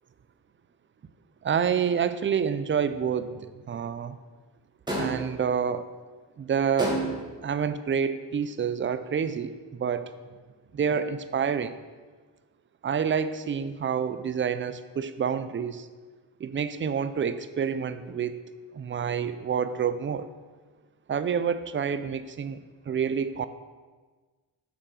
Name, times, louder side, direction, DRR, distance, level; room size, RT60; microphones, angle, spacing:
voice 1, 1.4-4.2 5.0-5.8 6.4-7.0 7.4-10.1 10.7-11.8 12.8-15.9 16.4-18.4 18.7-20.3 21.1-23.5, right 7 dB, 25° right, 12 dB, 0.4 m, -28 dB
sound 1, 4.9-5.4 6.8-7.4, right 1 dB, 10° right, 1.7 m, -29 dB
6.6 x 3.6 x 5.0 m, 1.4 s
supercardioid pair, 45°, 49 cm